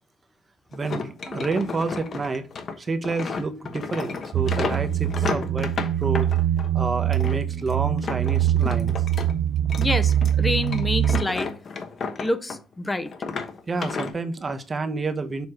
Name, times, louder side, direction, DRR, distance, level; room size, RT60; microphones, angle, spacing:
sound 1, 0.7-6.7 7.1-9.3 9.6-12.7 13.0-14.1, left 5 dB, 50° left, 1.1 m, -33 dB
voice 1, 0.7-2.5 2.8-5.7 6.0-6.3 6.7-9.0 13.7-15.5, right 3 dB, 35° right, 0.9 m, -29 dB
sound 2, 4.3-11.2, right 11 dB, 65° right, 0.6 m, -23 dB
voice 2, 9.8-11.5 12.2-13.1, left 2 dB, 20° left, 0.7 m, -27 dB
6.8 x 3.1 x 5.8 m
supercardioid pair, 70°, 0 cm